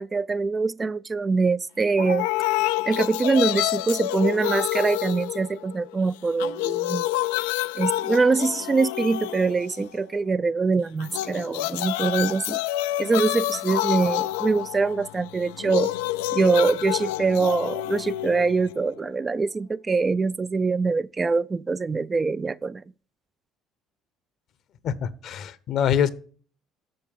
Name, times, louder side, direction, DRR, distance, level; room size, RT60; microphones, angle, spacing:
voice 1, 0.0-2.3 2.9-7.1 7.8-12.6 13.0-15.9 16.3-22.8, right 4 dB, 30° right, 0.3 m, -24 dB
sound 1, 2.0-6.0 6.3-10.0 11.0-19.0, left 16 dB, 85° left, 0.3 m, -28 dB
voice 2, 24.8-26.1, left 8 dB, 60° left, 0.8 m, -24 dB
7.7 x 6.5 x 5.3 m
hypercardioid pair, 70°, 0 cm